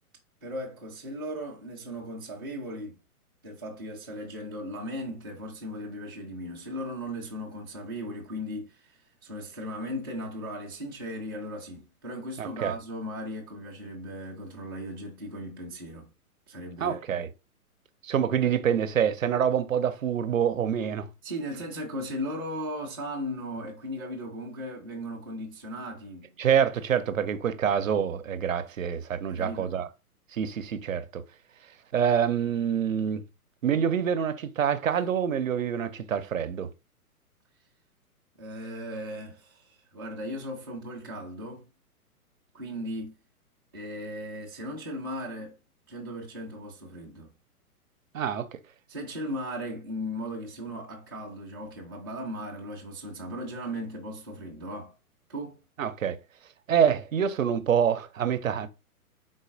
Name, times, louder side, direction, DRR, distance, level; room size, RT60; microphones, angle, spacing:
voice 1, 0.4-3.0 3.4-16.1 16.5-17.2 18.4-18.5 21.2-26.3 29.3-29.8 38.4-41.6 42.5-43.2 43.7-45.6 45.9-47.3 48.9-54.9 55.3-55.6, equal, 15° right, 0.4 m, -37 dB
voice 2, 12.4-12.7 16.8-17.3 18.0-21.1 26.4-29.9 30.3-31.2 31.9-33.2 33.6-36.7 48.1-48.5 55.8-56.2 56.7-58.7, right 8 dB, 60° right, 0.6 m, -26 dB
4.1 x 3.9 x 2.5 m
figure-of-eight pair, 120°, 45 cm